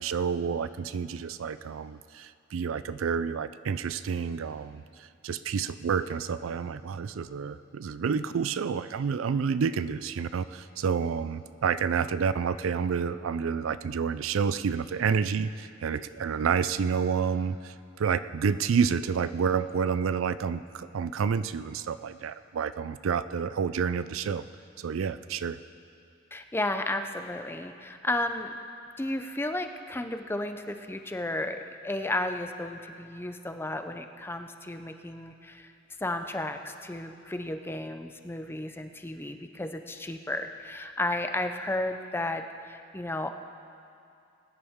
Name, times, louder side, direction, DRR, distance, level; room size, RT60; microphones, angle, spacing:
voice 1, 0.0-24.5 24.8-25.6, right 6 dB, 80° right, 14 dB, 0.4 m, -29 dB
voice 2, 26.3-28.5 29.0-31.6 31.8-35.7 36.0-43.3, left 1 dB, 10° left, 7 dB, 0.5 m, -33 dB
21.5 x 9.9 x 3.6 m, 2.5 s
head